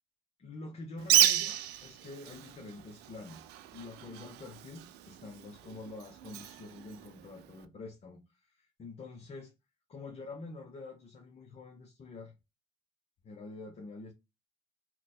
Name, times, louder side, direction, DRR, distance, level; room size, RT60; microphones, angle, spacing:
voice 1, 0.4-9.5 9.9-12.3 13.2-14.1, left 3 dB, 35° left, 0.7 m, -47 dB
Bird, 1.0-7.6, right 12 dB, 80° right, 0.4 m, -32 dB
2.9 x 2.1 x 4.0 m
cardioid pair, 110°, 17 cm